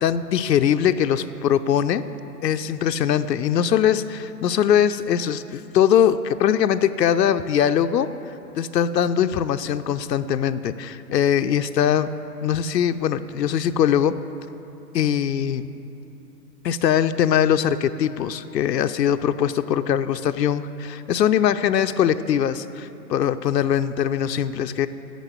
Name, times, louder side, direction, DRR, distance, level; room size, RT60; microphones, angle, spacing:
voice 1, 0.0-2.0 2.4-8.1 8.5-12.1 12.4-14.2 14.9-15.6 16.6-24.9, left 9 dB, 80° left, 10 dB, 0.5 m, -21 dB
9.2 x 6.5 x 8.0 m, 2.8 s
figure-of-eight pair, 125°, 49 cm